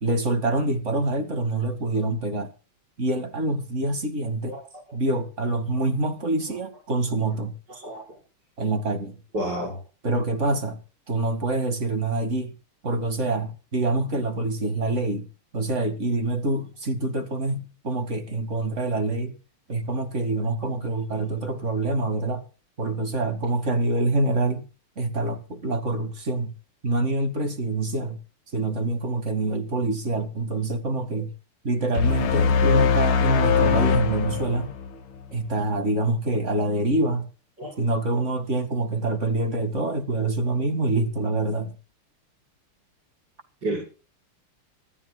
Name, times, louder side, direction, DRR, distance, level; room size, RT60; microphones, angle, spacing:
voice 1, 0.0-2.5 3.0-4.6 4.9-7.5 8.6-9.2 10.0-10.8 11.1-12.5 12.8-15.3 15.5-19.3 19.7-22.4 22.8-24.7 25.0-26.5 26.8-28.2 28.5-31.3 31.6-34.7 35.3-37.3 37.8-41.7, right 2 dB, 35° right, 2.4 m, -26 dB
voice 2, 7.7-8.0 9.3-9.8 37.6-37.8 43.6-43.9, right 1 dB, 50° right, 6.2 m, -30 dB
sound 1, 31.9-35.3, left 5 dB, 70° left, 2.2 m, -21 dB
25.5 x 14.0 x 2.3 m
omnidirectional pair, 2.4 m